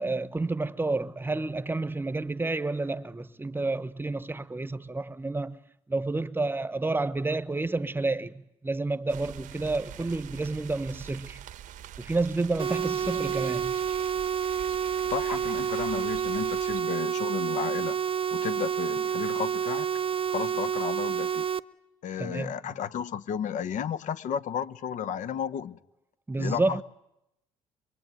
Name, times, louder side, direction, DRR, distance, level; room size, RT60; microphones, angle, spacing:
voice 1, 0.0-5.6 5.9-11.4 12.0-13.8 15.3-15.4 22.2-22.6 26.3-26.8, right 3 dB, 15° right, 1.0 m, -30 dB
sound 1, 9.1-16.8, right 11 dB, 70° right, 1.0 m, -45 dB
sound 2, 12.6-21.6, right 8 dB, 40° right, 0.9 m, -29 dB
voice 2, 15.1-18.0 18.3-19.9 20.3-21.5 22.0-25.8 26.4-26.8, left 8 dB, 65° left, 1.2 m, -33 dB
24.5 x 23.5 x 9.2 m
cardioid pair, 85°, 14 cm